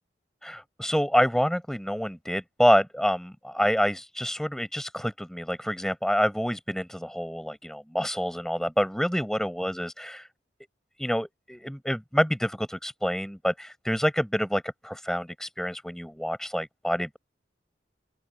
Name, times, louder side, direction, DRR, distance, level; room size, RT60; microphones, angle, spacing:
voice 1, 0.4-10.3 11.0-17.2, equal, 5° left, 5.4 m, -27 dB
open air
head